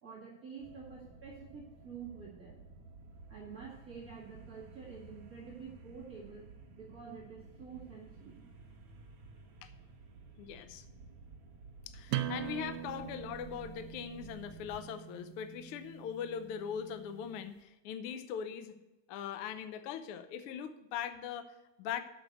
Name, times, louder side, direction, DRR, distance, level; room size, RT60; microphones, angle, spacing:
voice 1, 0.0-2.6 3.3-6.5 6.8-8.4, right 6 dB, 30° right, -5 dB, 2.0 m, -48 dB
sound 1, 0.6-15.0 15.4-15.5, right 3 dB, 55° right, 2.3 m, -54 dB
voice 2, 10.4-10.8 11.9-18.8 19.1-22.0, left 8 dB, 85° left, 10 dB, 1.2 m, -41 dB
sound 2, 12.1-17.5, right 11 dB, 80° right, 1.9 m, -42 dB
7.8 x 6.3 x 8.1 m, 1.0 s
omnidirectional pair, 3.5 m